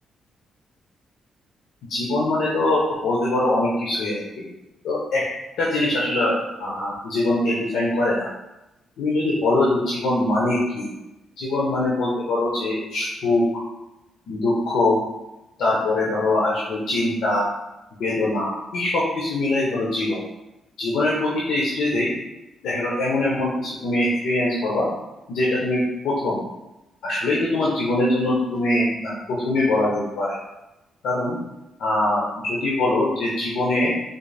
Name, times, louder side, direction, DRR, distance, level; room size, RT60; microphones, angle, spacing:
voice 1, 1.9-4.4 4.8-5.2 5.6-8.3 9.0-10.9 11.4-13.5 14.3-15.0 15.6-17.5 18.0-20.2 20.8-22.1 22.6-24.9 25.3-26.4 27.0-30.3 31.0-31.4 31.8-33.9, left 2 dB, 75° left, -6 dB, 0.7 m, -22 dB
3.9 x 2.3 x 3.3 m, 0.97 s
cardioid pair, 160°, 0 cm